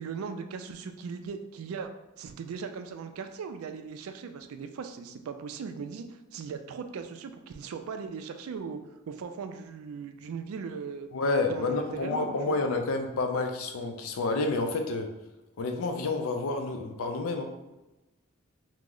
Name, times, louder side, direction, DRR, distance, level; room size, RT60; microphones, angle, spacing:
voice 1, 0.0-1.9 2.2-8.8 9.1-11.1 11.5-12.6, right 6 dB, 85° right, 7 dB, 0.3 m, -38 dB
voice 2, 11.1-15.1 15.6-17.5, left 3 dB, 80° left, 4 dB, 0.4 m, -29 dB
3.0 x 2.0 x 3.7 m, 1.0 s
head